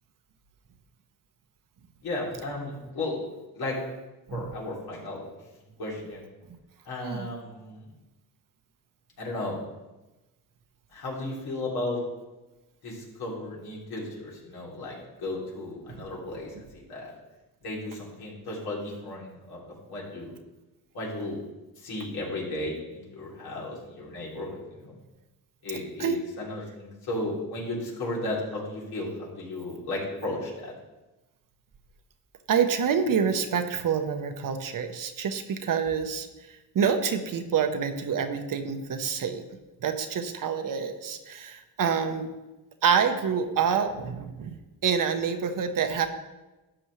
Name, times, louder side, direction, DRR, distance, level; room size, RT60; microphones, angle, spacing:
voice 1, 2.0-3.2 3.5-3.8 4.3-5.2 5.8-6.3 6.8-7.9 9.2-9.6 10.9-12.0 12.8-17.1 17.6-19.6 19.9-20.3 20.9-21.4 21.8-24.9 25.6-30.7, left 2 dB, 70° left, -4 dB, 3.3 m, -34 dB
voice 2, 32.5-42.3 42.8-46.1, right 7 dB, 55° right, 6 dB, 1.1 m, -27 dB
12.0 x 7.6 x 3.3 m, 1.1 s
cardioid pair, 80°, 38 cm